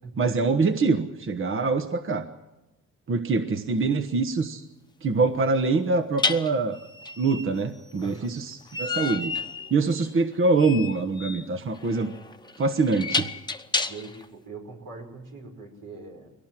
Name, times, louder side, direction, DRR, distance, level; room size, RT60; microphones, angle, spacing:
voice 1, 0.2-2.3 3.1-4.6 5.0-6.8 7.2-9.3 9.7-12.1 12.6-13.3, right 3 dB, 45° right, 7 dB, 1.3 m, -24 dB
sound 1, 3.8-3.9 6.2-14.3, left 4 dB, 15° left, 1.1 m, -31 dB
voice 2, 13.8-16.3, right 3 dB, 85° right, 2 dB, 5.2 m, -42 dB
22.0 x 18.0 x 7.6 m, 1.0 s
cardioid pair, 90°, 30 cm